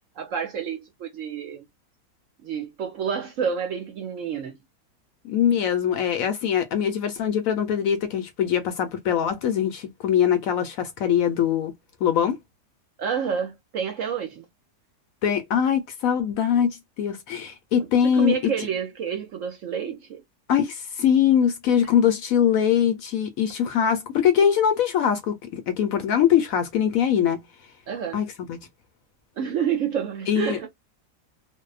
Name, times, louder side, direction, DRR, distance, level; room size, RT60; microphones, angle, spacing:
voice 1, 0.2-1.7 2.4-4.6 13.0-14.4 17.8-20.2 27.9-28.2 29.4-30.7, right 7 dB, 65° right, 0.9 m, -29 dB
voice 2, 5.2-11.7 12.0-12.4 15.2-18.5 20.5-27.4 28.1-28.7 30.3-30.6, left 8 dB, 70° left, 0.9 m, -22 dB
2.6 x 2.1 x 2.3 m
omnidirectional pair, 1.7 m